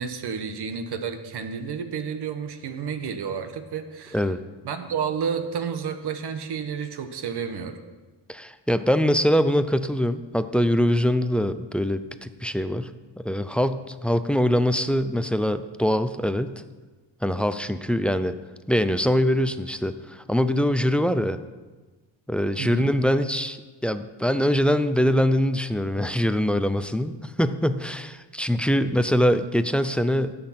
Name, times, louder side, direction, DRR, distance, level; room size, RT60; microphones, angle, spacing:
voice 1, 0.0-4.2 4.6-7.8 22.6-22.9, right 6 dB, 60° right, 8 dB, 1.3 m, -31 dB
voice 2, 8.3-12.9 13.2-16.5 17.2-18.4 18.7-21.4 22.3-30.3, equal, 5° left, 11 dB, 0.3 m, -23 dB
12.5 x 8.6 x 5.8 m, 1.3 s
cardioid pair, 130°, 46 cm